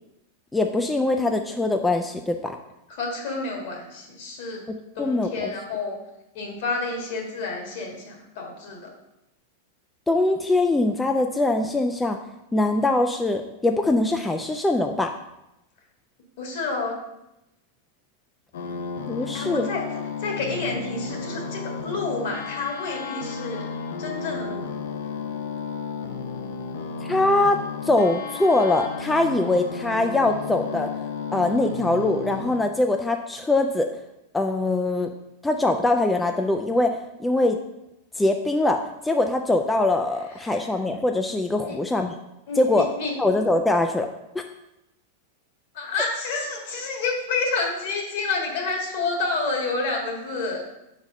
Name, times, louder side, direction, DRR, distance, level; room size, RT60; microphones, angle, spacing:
voice 1, 0.5-2.6 4.7-5.5 10.1-12.2 12.5-15.1 19.1-19.7 27.1-27.6 27.8-30.9 31.3-33.9 34.3-35.1 35.4-37.6 38.2-42.2 42.6-42.9 43.2-44.1, left 2 dB, 5° left, 4 dB, 0.3 m, -22 dB
voice 2, 2.9-4.6 4.9-6.0 6.3-8.9 16.4-16.9 19.3-19.8 20.2-23.6 24.0-24.6 40.4-40.6 41.6-41.8 42.5-43.1 45.7-50.6, left 3 dB, 65° left, 0 dB, 1.7 m, -29 dB
sound 1, 18.5-32.6, left 5 dB, 85° left, 0.6 m, -33 dB
4.7 x 4.1 x 5.1 m, 0.89 s
supercardioid pair, 140°, 0 cm